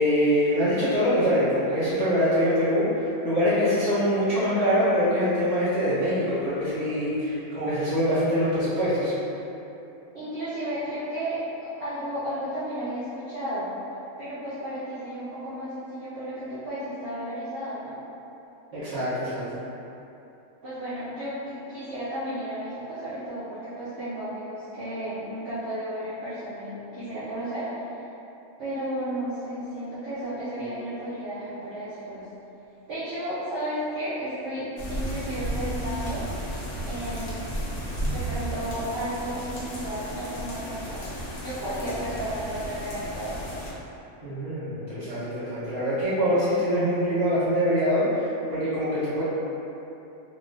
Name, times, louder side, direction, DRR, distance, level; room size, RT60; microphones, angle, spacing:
voice 1, 0.0-9.1 18.7-19.6 44.2-49.2, equal, 25° right, -13 dB, 1.1 m, -24 dB
voice 2, 10.1-13.7 14.2-17.9 20.6-27.8 28.6-32.2 32.9-36.2 36.8-37.4 38.1-41.1 41.4-43.4, equal, 50° right, -14 dB, 0.9 m, -33 dB
sound 1, 34.8-43.7, right 1 dB, 65° left, 0.4 m, -33 dB
3.6 x 2.2 x 2.7 m, 2.9 s
omnidirectional pair, 1.5 m